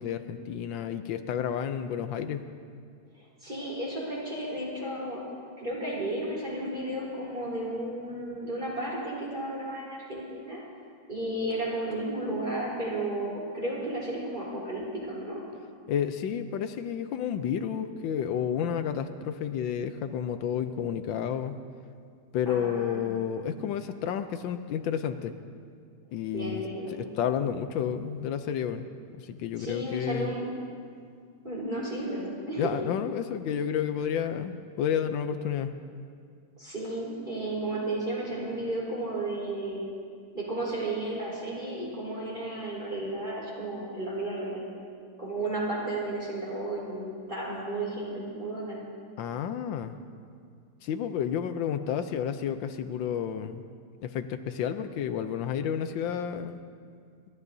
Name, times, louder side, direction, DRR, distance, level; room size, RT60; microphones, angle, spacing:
voice 1, 0.0-2.4 15.9-21.6 22.3-25.4 26.1-26.6 26.9-28.8 29.2-30.3 32.6-35.7 49.2-49.9 50.8-53.6 54.0-56.6, left 8 dB, 80° left, 9 dB, 1.4 m, -31 dB
voice 2, 3.2-5.2 5.6-10.6 11.1-15.4 22.5-23.2 26.3-26.9 29.6-30.5 31.4-32.7 36.6-39.9 40.3-44.6 45.2-48.8, right 1 dB, 25° right, -7 dB, 4.1 m, -33 dB
28.0 x 13.0 x 2.7 m, 2.2 s
omnidirectional pair, 2.0 m